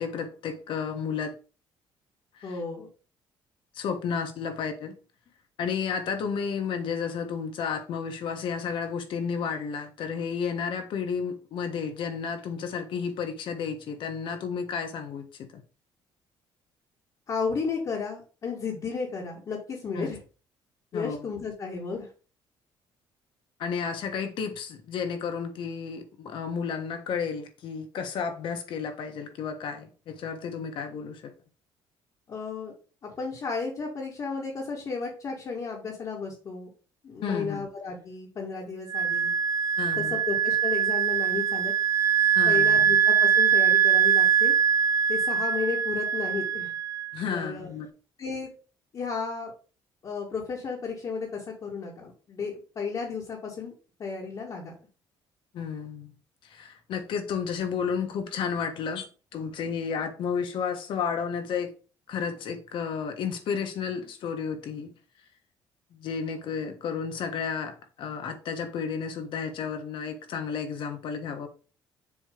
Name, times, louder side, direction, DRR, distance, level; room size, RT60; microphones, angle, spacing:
voice 1, 0.0-1.3 2.3-2.6 3.7-4.9 5.6-15.6 19.9-20.1 20.9-21.3 23.6-31.3 37.2-37.7 39.8-40.2 42.3-42.9 47.1-47.9 55.5-56.1 56.4-59.1 59.3-61.7 62.1-64.9 65.9-71.5, left 6 dB, 65° left, 1.4 m, -32 dB
voice 2, 2.4-2.9 17.3-20.2 20.9-22.1 32.3-32.7 33.0-36.7 37.0-39.3 39.9-41.7 42.5-44.5 45.1-46.7 47.3-47.7 48.2-48.5 48.9-49.5 50.0-53.7 54.0-54.7, left 5 dB, 45° left, 2.2 m, -33 dB
Wind instrument woodwind instrument, 38.9-47.2, right 8 dB, 40° right, 0.5 m, -23 dB
7.3 x 3.2 x 5.1 m
cardioid pair, 120°, 9 cm